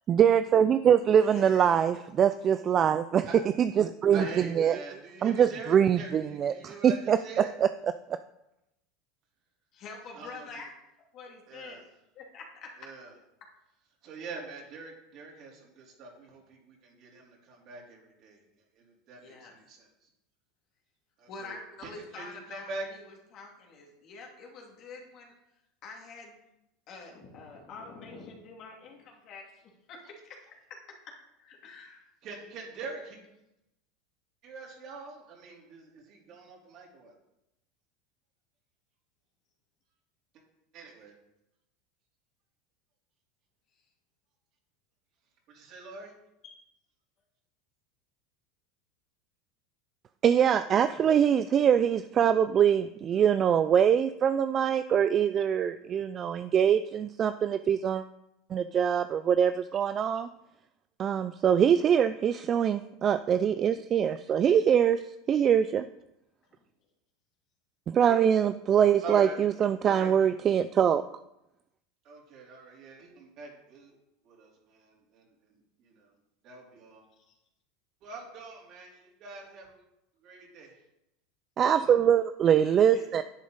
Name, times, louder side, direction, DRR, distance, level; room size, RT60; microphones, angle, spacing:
voice 1, 0.1-3.3 3.6-4.2 4.6-4.8 5.2-8.2 50.2-58.0 58.5-60.3 61.0-65.0 65.3-65.8 67.9-71.0 81.6-83.2, right 8 dB, 35° right, 11 dB, 0.4 m, -24 dB
voice 2, 1.2-1.7 9.7-10.7 11.1-11.8 12.1-12.7 19.2-19.5 21.3-25.3 25.8-26.4 26.9-30.4 31.4-32.1 46.4-46.6 82.6-83.1, left 3 dB, 50° left, 0 dB, 2.7 m, -46 dB
voice 3, 4.1-7.5 10.1-10.5 11.5-11.8 12.8-13.1 14.0-18.4 18.7-19.9 21.2-21.6 21.8-22.9 32.2-33.2 34.4-37.1 40.7-41.1 45.5-46.1 69.0-69.4 69.9-70.3 72.0-74.0 74.2-76.1 76.4-77.0 78.0-79.8 80.2-80.7, right 3 dB, 50° right, -2 dB, 3.6 m, -44 dB
10.5 x 8.5 x 4.1 m, 0.87 s
supercardioid pair, 110°, 0 cm